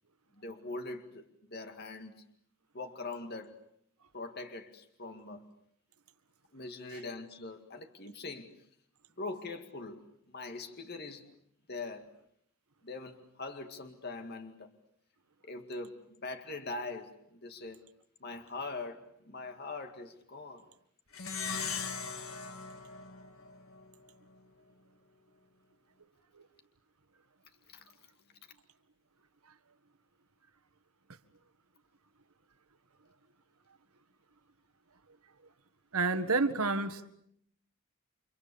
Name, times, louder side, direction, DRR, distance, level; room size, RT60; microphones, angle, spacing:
voice 1, 0.3-2.2 2.7-3.6 4.1-5.5 6.5-8.5 9.2-11.3 11.7-12.1 12.8-14.7 15.4-17.8 18.2-20.7 27.7-27.9, left 3 dB, 45° left, 2.1 m, -42 dB
Plucked string instrument, 21.1-23.9, left 5 dB, 65° left, 2.3 m, -39 dB
voice 2, 35.9-37.1, right 3 dB, 80° right, 1.8 m, -30 dB
30.0 x 26.0 x 7.0 m
head